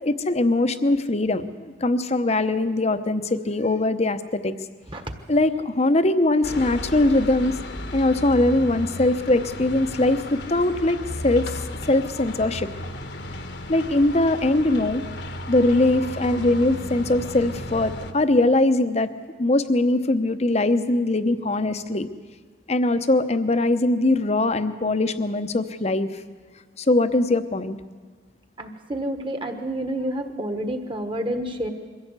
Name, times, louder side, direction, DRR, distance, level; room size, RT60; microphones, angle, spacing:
voice 1, 0.0-4.5 5.3-7.5 7.9-11.5 11.9-12.7 13.7-15.0 15.5-19.1 19.4-22.1 22.7-26.1 26.8-27.8, left 2 dB, 35° left, 10 dB, 0.8 m, -21 dB
sound 1, 6.4-18.1, left 1 dB, 65° left, 1.3 m, -34 dB
voice 2, 28.6-31.7, right 1 dB, 25° right, 7 dB, 1.5 m, -29 dB
23.0 x 15.5 x 8.2 m, 1.5 s
head